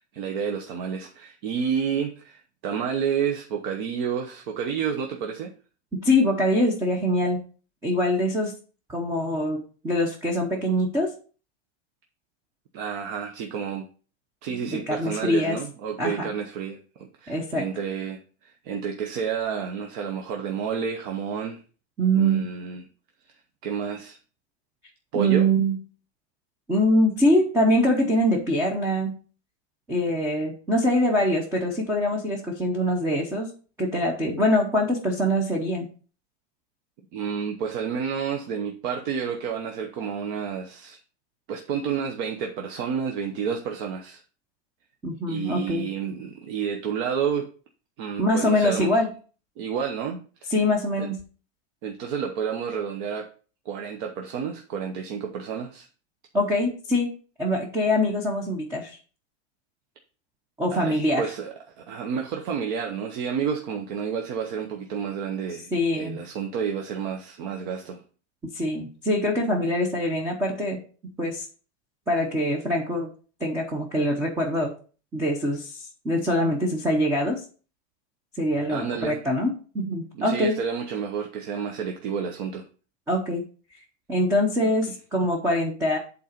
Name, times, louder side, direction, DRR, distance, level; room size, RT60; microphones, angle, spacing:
voice 1, 0.0-5.5 12.7-13.9 14.4-21.6 22.1-22.8 23.6-24.2 25.1-25.5 37.1-41.0 41.5-44.2 45.3-47.5 48.0-48.9 49.6-50.5 51.0-51.1 51.8-53.3 53.6-55.9 60.7-68.0 78.7-79.2 80.1-82.7 84.9-85.0, right 7 dB, 45° right, 0.9 m, -30 dB
voice 2, 6.0-7.4 7.8-8.5 8.9-11.1 14.9-15.6 16.0-16.2 17.3-17.7 22.0-22.5 25.1-25.8 26.7-29.1 29.9-33.5 33.8-35.9 45.0-45.9 48.2-49.1 50.5-51.2 56.3-57.1 57.4-59.0 60.6-61.3 65.7-66.2 68.5-70.8 71.2-71.5 72.1-73.1 73.4-74.7 75.1-77.4 78.4-80.6 83.1-83.4 84.1-86.0, equal, 10° right, 0.7 m, -24 dB
8.4 x 4.0 x 5.0 m
supercardioid pair, 180°, 35 cm